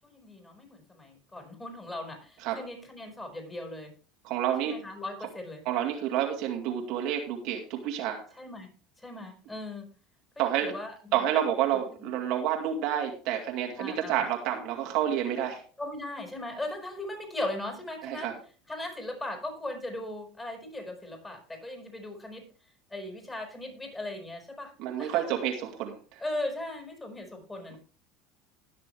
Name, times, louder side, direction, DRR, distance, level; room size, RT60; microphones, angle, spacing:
voice 1, 0.0-3.9 4.6-5.6 8.4-8.7 9.0-9.9 10.4-11.3 11.7-12.1 13.8-14.2 15.8-18.3 18.7-22.5 22.9-24.7 25.0-25.3 26.2-27.8, left 1 dB, 15° left, 3 dB, 5.4 m, -38 dB
voice 2, 4.2-4.8 5.7-8.2 10.4-10.7 11.1-15.6 18.0-18.3 24.8-26.2, right 10 dB, 65° right, 2 dB, 2.3 m, -29 dB
20.0 x 6.8 x 3.4 m, 0.38 s
hypercardioid pair, 85°, 0 cm